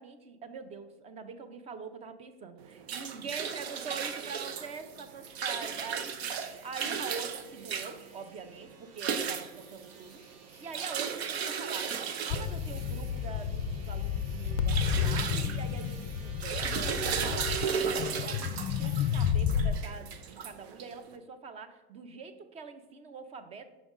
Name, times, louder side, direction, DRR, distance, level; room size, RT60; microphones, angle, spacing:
voice 1, 0.0-10.2 10.6-11.9 12.3-23.7, right 5 dB, 20° right, 10 dB, 0.4 m, -44 dB
sound 1, 2.6-21.1, right 7 dB, 75° right, 0.8 m, -36 dB
sound 2, 5.1-19.3, right 4 dB, 45° right, 1.0 m, -55 dB
sound 3, 12.3-19.8, left 8 dB, 40° left, 0.4 m, -31 dB
6.1 x 5.2 x 3.6 m, 1.1 s
supercardioid pair, 140°, 32 cm